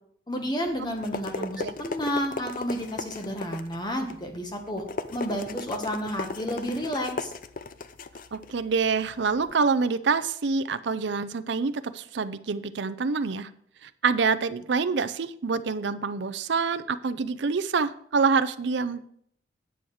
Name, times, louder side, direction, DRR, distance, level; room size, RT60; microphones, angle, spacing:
voice 1, 0.3-4.8 5.1-7.3, equal, 20° left, 3 dB, 1.4 m, -31 dB
sound 1, 0.7-9.5, left 3 dB, 45° left, 0.5 m, -37 dB
voice 2, 1.4-1.7 8.3-13.5 13.8-19.0, right 5 dB, 70° right, 14 dB, 0.5 m, -26 dB
9.4 x 7.0 x 4.8 m, 0.66 s
head